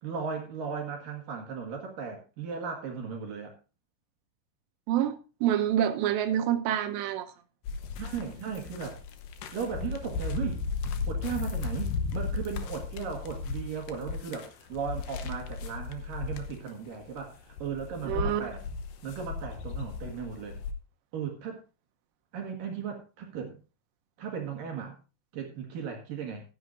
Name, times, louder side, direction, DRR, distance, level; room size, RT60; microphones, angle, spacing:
voice 1, 0.0-3.5 8.0-9.0 9.5-10.6 11.1-18.6 19.0-20.6 21.1-21.6 22.3-23.6 24.2-25.0 25.3-26.4, right 6 dB, 60° right, 2.7 m, -36 dB
voice 2, 4.9-7.3 18.0-18.4, right 10 dB, 75° right, 2.9 m, -27 dB
sound 1, 7.6-20.7, left 5 dB, 90° left, 1.9 m, -35 dB
15.0 x 11.5 x 2.6 m
omnidirectional pair, 5.6 m